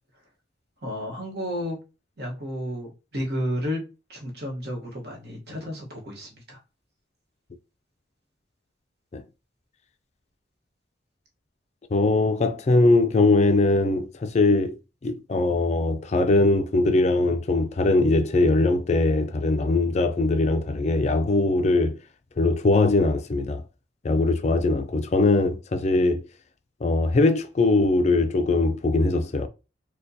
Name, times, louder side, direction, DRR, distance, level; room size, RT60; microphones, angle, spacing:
voice 1, 0.8-1.8 2.2-3.8 4.1-6.6, equal, 60° right, 1.2 m, -32 dB
voice 2, 11.9-14.8 15.0-22.0 22.4-23.6 24.0-26.2 26.8-29.5, left 2 dB, 35° left, 0.4 m, -21 dB
4.3 x 2.2 x 2.7 m
head